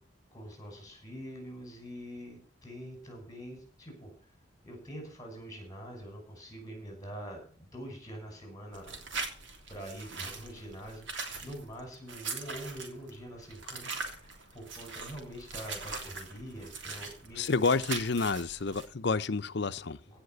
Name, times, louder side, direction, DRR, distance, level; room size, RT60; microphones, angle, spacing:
voice 1, 0.3-4.1 4.6-9.0 9.7-17.5 20.1-20.2, equal, 20° left, 6.3 m, -45 dB
sound 1, 8.7-18.9, right 4 dB, 70° right, 3.2 m, -41 dB
voice 2, 17.4-20.0, left 4 dB, 60° left, 0.7 m, -29 dB
16.5 x 5.9 x 7.9 m
head